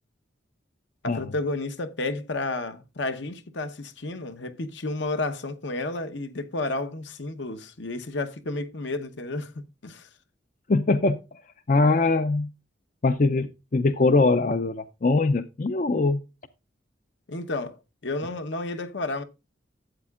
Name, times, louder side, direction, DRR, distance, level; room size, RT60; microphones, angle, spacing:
voice 1, 1.0-9.5 9.8-10.1 17.3-17.8 18.0-19.2, left 2 dB, 70° left, 1.0 m, -31 dB
voice 2, 10.7-11.2 11.7-12.5 13.0-16.2, left 3 dB, 40° left, 0.5 m, -22 dB
12.5 x 8.3 x 2.4 m
head